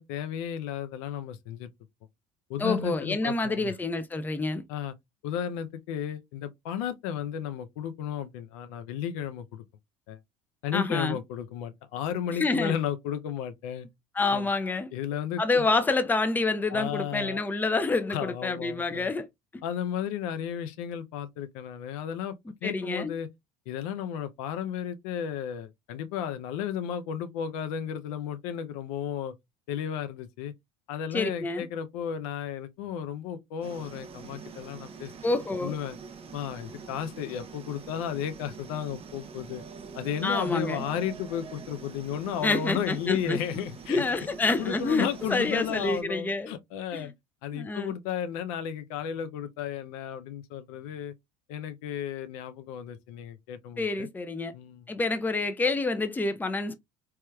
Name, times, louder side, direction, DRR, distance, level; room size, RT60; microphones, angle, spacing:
voice 1, 0.0-1.7 2.5-3.7 4.7-4.9 5.2-9.6 10.1-10.2 10.6-13.9 14.3-14.5 14.9-15.7 16.7-17.4 18.1-19.1 19.6-22.4 22.6-23.3 23.7-29.3 29.7-30.5 30.9-35.1 35.6-36.0 36.3-39.6 39.9-44.0 44.6-47.1 47.4-51.1 51.5-54.1 54.5-54.9, left 9 dB, 80° left, 0.5 m, -34 dB
voice 2, 2.6-4.6 10.7-11.2 12.4-12.7 14.1-14.9 15.4-19.3 19.5-19.6 22.6-23.1 31.1-31.7 35.2-35.7 40.2-40.9 42.4-43.4 43.9-46.5 46.9-47.1 47.5-47.9 53.8-54.5 54.9-56.7, left 3 dB, 10° left, 0.4 m, -28 dB
sound 1, 33.6-46.0, right 5 dB, 35° right, 0.6 m, -44 dB
3.2 x 3.0 x 2.2 m
hypercardioid pair, 80°, 18 cm